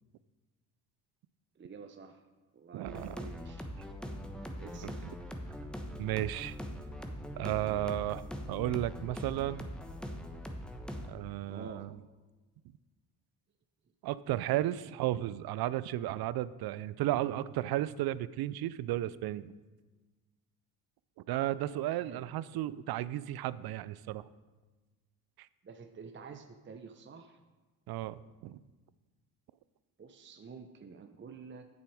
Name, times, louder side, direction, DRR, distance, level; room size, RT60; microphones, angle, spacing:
voice 1, 1.6-2.2 2.5-3.7 4.6-5.1 11.5-11.9 21.4-22.2 25.6-27.4 30.0-31.7, right 5 dB, 25° right, 6 dB, 0.7 m, -49 dB
voice 2, 2.7-3.3 4.8-4.9 6.0-6.6 7.4-9.7 11.1-11.9 14.0-19.5 21.3-24.3 27.9-28.6, right 14 dB, 55° right, 18 dB, 0.5 m, -34 dB
sound 1, 2.8-11.1, equal, ahead, 1.1 m, -42 dB
8.9 x 7.0 x 4.8 m, 1.3 s
hypercardioid pair, 60°, 44 cm